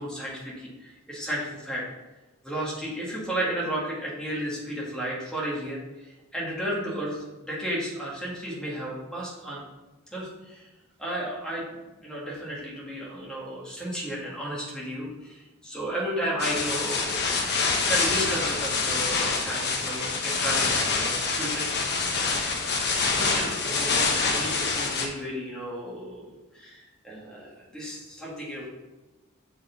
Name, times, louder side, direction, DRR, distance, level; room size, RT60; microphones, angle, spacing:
voice 1, 0.0-1.8 2.4-5.8 6.0-9.6 10.1-10.6 11.0-17.2 17.8-20.7 21.0-21.7 22.8-28.7, right 1 dB, 5° left, -6 dB, 1.8 m, -33 dB
sound 1, 16.4-25.1, left 4 dB, 50° left, 0.9 m, -26 dB
6.5 x 4.7 x 4.0 m, 1.1 s
head